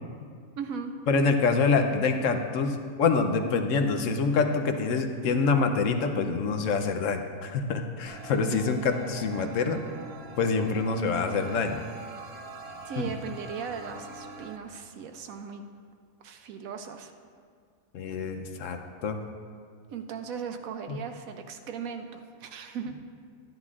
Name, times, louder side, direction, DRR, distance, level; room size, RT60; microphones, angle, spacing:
voice 1, 0.6-0.9 12.8-15.7 16.2-17.1 19.9-22.9, right 6 dB, 80° right, 6 dB, 1.0 m, -38 dB
voice 2, 1.1-9.8 10.4-11.8 13.0-13.1 17.9-19.2 20.9-21.0, left 4 dB, 70° left, 6 dB, 1.0 m, -26 dB
sound 1, 8.1-14.6, right 4 dB, 60° right, 0.7 m, -44 dB
11.5 x 10.5 x 2.4 m, 2.1 s
omnidirectional pair, 1.5 m